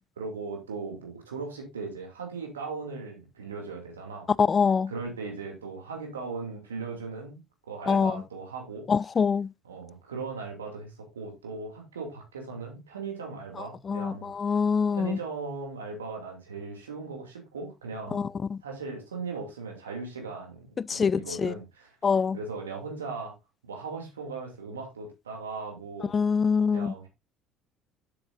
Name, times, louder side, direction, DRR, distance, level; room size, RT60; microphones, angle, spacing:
voice 1, 0.2-4.3 4.9-7.4 7.7-8.9 9.6-14.6 14.9-18.3 18.6-21.9 22.3-23.3 23.6-26.1 26.7-27.1, right 4 dB, 80° right, 2.5 m, -38 dB
voice 2, 4.4-4.9 7.9-8.1 8.9-9.5 13.9-15.2 18.1-18.6 20.8-21.5 22.0-22.4 26.1-26.9, left 6 dB, 35° left, 0.4 m, -25 dB
9.8 x 7.6 x 2.5 m
figure-of-eight pair, 55°, 0 cm